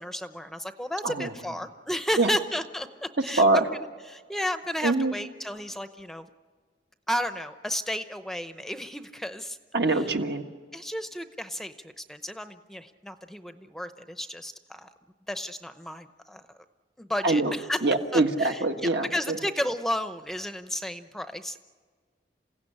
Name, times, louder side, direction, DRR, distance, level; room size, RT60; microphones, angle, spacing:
voice 1, 0.0-6.3 7.1-9.6 9.9-10.1 10.7-14.9 15.3-16.4 17.0-17.8 18.1-21.6, equal, ahead, 9 dB, 0.7 m, -33 dB
voice 2, 4.8-5.1 9.7-10.4 17.2-17.5 17.8-19.4, right 2 dB, 65° right, 4 dB, 1.6 m, -23 dB
28.0 x 16.5 x 10.0 m, 1.5 s
head